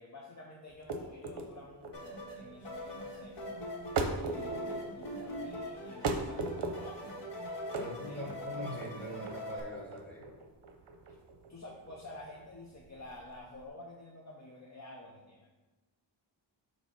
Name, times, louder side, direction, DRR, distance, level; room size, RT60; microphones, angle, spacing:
voice 1, 0.0-3.5 4.1-7.2 7.7-8.6 11.5-15.5, left 2 dB, 35° left, 0 dB, 0.7 m, -50 dB
sound 1, 0.7-13.7, right 3 dB, 60° right, 0.7 m, -39 dB
sound 2, 1.9-9.6, equal, 60° left, 1.7 m, -42 dB
voice 2, 7.7-10.3, equal, 5° left, -5 dB, 2.0 m, -42 dB
7.0 x 2.9 x 5.8 m, 1.2 s
wide cardioid pair, 130°, 47 cm